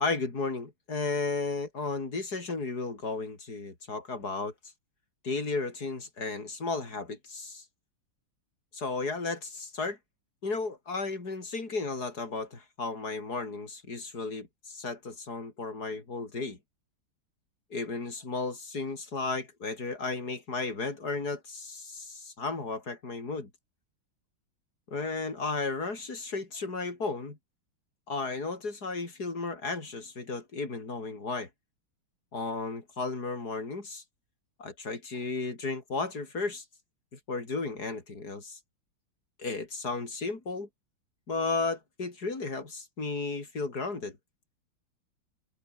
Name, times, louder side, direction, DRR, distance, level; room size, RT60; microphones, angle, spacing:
voice 1, 0.0-4.5 5.2-7.7 8.7-10.0 10.4-16.6 17.7-23.5 24.9-27.4 28.1-31.5 32.3-34.0 34.6-36.6 37.1-38.6 39.4-40.7 41.3-44.2, left 3 dB, 45° left, 5.2 m, -34 dB
omnidirectional pair, 2.2 m